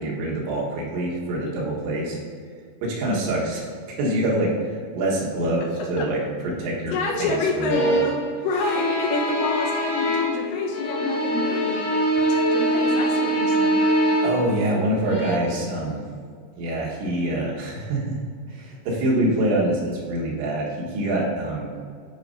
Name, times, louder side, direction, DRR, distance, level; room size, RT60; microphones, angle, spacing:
voice 1, 0.0-2.2 2.8-8.0 14.2-16.0 16.6-18.2 18.5-21.7, right 1 dB, 90° right, -4 dB, 3.7 m, -25 dB
voice 2, 6.9-8.1 8.4-13.9, left 2 dB, 90° left, -1 dB, 3.3 m, -28 dB
sound 1, 7.7-8.3 8.5-10.5 10.7-14.5 15.0-15.4, equal, 75° left, 2.1 m, -23 dB
11.0 x 5.2 x 2.6 m, 2.1 s
omnidirectional pair, 5.1 m